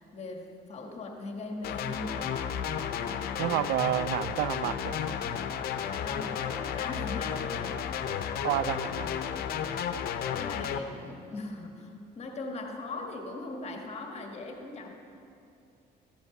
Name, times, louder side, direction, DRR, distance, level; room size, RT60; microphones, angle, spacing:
voice 1, 0.0-2.5 5.8-8.0 8.7-9.3 10.3-14.9, left 2 dB, 40° left, 3 dB, 1.6 m, -40 dB
sound 1, 1.6-10.8, left 8 dB, 65° left, 0.7 m, -33 dB
voice 2, 3.4-5.0 8.4-9.1, right 14 dB, 80° right, 17 dB, 0.4 m, -29 dB
13.5 x 8.1 x 5.9 m, 2.6 s
cardioid pair, 110°, 17 cm